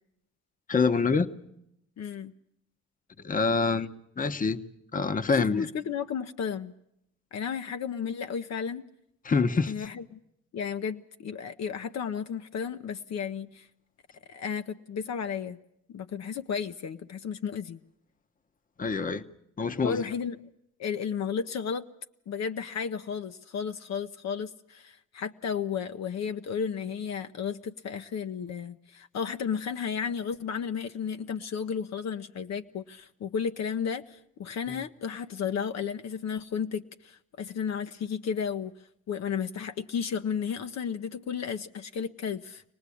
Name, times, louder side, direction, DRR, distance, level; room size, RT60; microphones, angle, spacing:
voice 1, 0.7-1.3 3.2-3.9 4.2-4.6 4.9-5.7 9.2-9.9 18.8-19.2 19.6-20.0 34.7-34.8, left 4 dB, 25° left, 12 dB, 0.9 m, -26 dB
voice 2, 2.0-2.3 5.3-6.7 7.3-8.9 9.7-10.2 10.5-13.7 14.3-15.6 15.9-17.8 19.8-20.4 20.8-21.9 22.3-38.7 39.1-42.6, left 7 dB, 60° left, 8 dB, 0.9 m, -33 dB
24.5 x 19.0 x 8.5 m, 0.79 s
cardioid pair, 90°, 30 cm